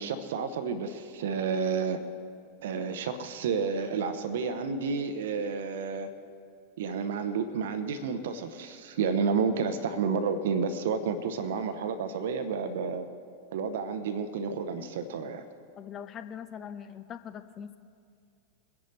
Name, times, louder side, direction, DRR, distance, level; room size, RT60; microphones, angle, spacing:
voice 1, 0.0-2.0 2.6-6.1 6.8-13.1 13.5-15.4, right 5 dB, 55° right, 9 dB, 0.9 m, -30 dB
voice 2, 15.8-17.8, left 8 dB, 30° left, 10 dB, 0.7 m, -42 dB
23.5 x 10.5 x 3.2 m, 2.3 s
figure-of-eight pair, 90°, 0 cm